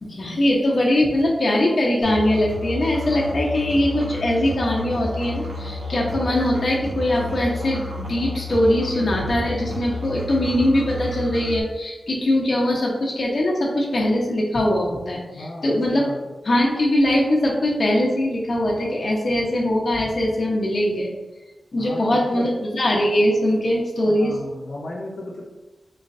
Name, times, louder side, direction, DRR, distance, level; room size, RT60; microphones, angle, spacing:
voice 1, 0.0-16.1 16.4-21.1 21.7-24.4, left 1 dB, 55° left, -2 dB, 0.9 m, -21 dB
Musical instrument, 2.0-11.6, left 1 dB, 80° right, 1.1 m, -31 dB
voice 2, 15.3-16.3 21.8-22.5 24.0-25.4, left 1 dB, 90° left, -4 dB, 0.6 m, -35 dB
4.0 x 3.1 x 2.6 m, 1.2 s
wide cardioid pair, 75°, 0 cm